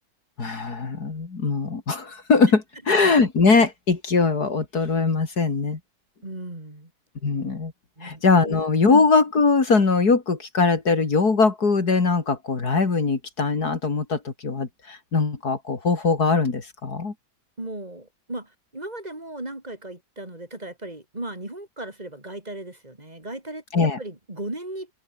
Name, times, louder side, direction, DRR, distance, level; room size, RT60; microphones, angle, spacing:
voice 1, 0.4-5.8 7.2-7.7 8.0-17.1 23.7-24.0, left 4 dB, 65° left, 3.4 m, -21 dB
voice 2, 6.2-6.9 8.0-8.5 17.6-24.9, right 1 dB, 25° right, 4.6 m, -36 dB
omnidirectional pair, 1.8 m